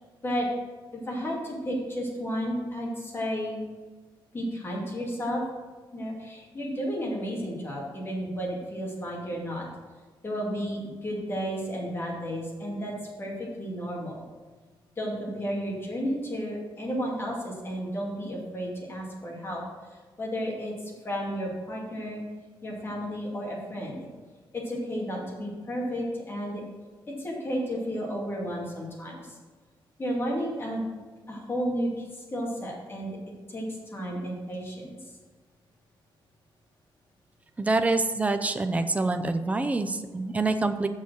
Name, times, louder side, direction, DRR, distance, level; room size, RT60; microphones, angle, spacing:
voice 1, 0.9-3.6 4.3-5.4 5.9-9.7 10.2-14.2 15.0-19.6 19.9-22.2 22.6-24.1 24.5-26.6 27.1-29.4 30.0-30.8 31.3-33.2 33.5-35.0, equal, 25° left, -3 dB, 2.4 m, -32 dB
voice 2, 37.6-40.9, right 3 dB, 15° right, 7 dB, 0.5 m, -26 dB
6.9 x 6.4 x 6.2 m, 1.4 s
wide cardioid pair, 150°, 9 cm